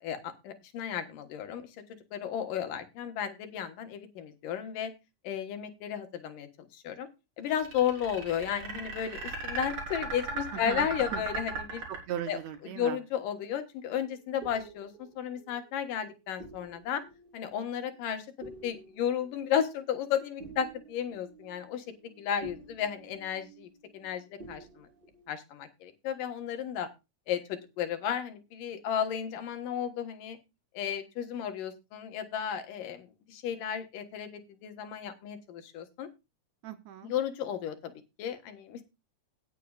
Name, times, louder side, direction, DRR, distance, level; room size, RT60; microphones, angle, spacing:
voice 1, 0.0-1.7 2.1-4.9 5.2-7.1 7.4-11.8 12.3-12.4 12.7-17.0 17.3-21.8 22.2-24.9 25.3-26.9 27.3-30.4 30.7-36.1 37.0-38.8, left 9 dB, 85° left, 7 dB, 3.1 m, -34 dB
sound 1, 7.5-12.6, right 3 dB, 40° right, 4.7 m, -36 dB
voice 2, 10.5-11.2 11.9-13.0 36.6-37.1, right 10 dB, 70° right, 10 dB, 1.9 m, -38 dB
sound 2, 14.0-24.1 24.4-25.3, right 3 dB, 20° right, 1.5 m, -51 dB
17.5 x 8.4 x 2.4 m, 0.25 s
omnidirectional pair, 3.7 m